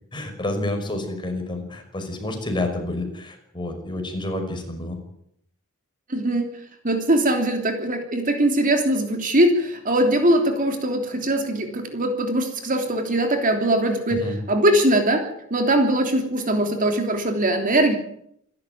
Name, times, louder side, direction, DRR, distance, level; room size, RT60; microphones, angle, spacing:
voice 1, 0.1-5.0 14.1-14.4, left 1 dB, 20° left, 4 dB, 5.6 m, -29 dB
voice 2, 6.1-6.5 6.8-18.0, right 1 dB, 40° right, 5 dB, 3.2 m, -21 dB
27.5 x 13.0 x 9.4 m, 0.73 s
head